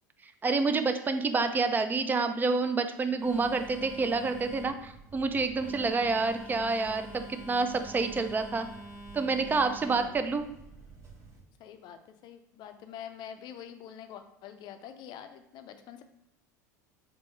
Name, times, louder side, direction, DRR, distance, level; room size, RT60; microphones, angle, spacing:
voice 1, 0.4-8.7 9.1-10.4, right 4 dB, 20° right, 8 dB, 0.4 m, -28 dB
Telephone, 3.2-11.4, right 2 dB, 35° right, 1.4 m, -46 dB
voice 2, 9.8-10.2 11.6-16.0, left 9 dB, 50° left, 8 dB, 0.5 m, -46 dB
4.5 x 2.6 x 3.0 m, 0.84 s
hypercardioid pair, 85°, 10 cm